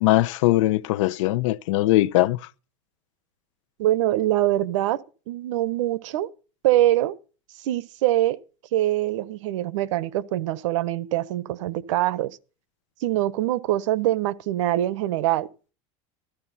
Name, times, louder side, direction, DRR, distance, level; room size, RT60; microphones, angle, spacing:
voice 1, 0.0-2.4, left 17 dB, 80° left, 0.8 m, -20 dB
voice 2, 3.8-6.3 6.6-7.1 7.6-8.4 8.7-12.4 13.0-15.5, right 14 dB, 85° right, 1.1 m, -24 dB
14.0 x 13.0 x 4.2 m
supercardioid pair, 145°, 16 cm